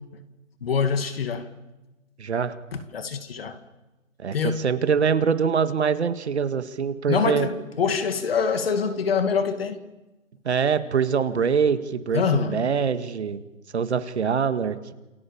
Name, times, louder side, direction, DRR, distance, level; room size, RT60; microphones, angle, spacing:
voice 1, 0.6-1.5 2.7-3.6 4.3-4.7 7.1-9.8 12.1-12.7, left 6 dB, 45° left, 2.3 m, -25 dB
voice 2, 2.2-2.5 4.2-7.5 10.5-13.4 13.7-14.9, right 6 dB, 55° right, 2.0 m, -24 dB
28.5 x 28.0 x 7.2 m
hypercardioid pair, 170°, 39 cm